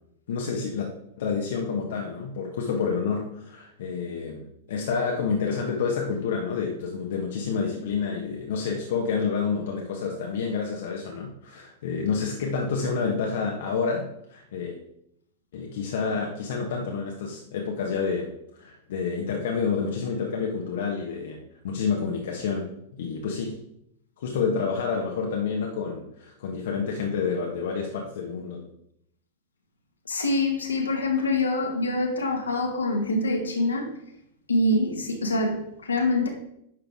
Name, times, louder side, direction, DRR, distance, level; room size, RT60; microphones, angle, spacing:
voice 1, 0.3-0.9 1.2-14.8 15.5-22.7 22.9-23.5 24.2-28.6, left 5 dB, 60° left, 1.5 m, -29 dB
voice 2, 30.1-33.9 34.5-36.3, left 2 dB, 75° left, 2.0 m, -25 dB
11.0 x 6.7 x 3.8 m
figure-of-eight pair, 95°, 0 cm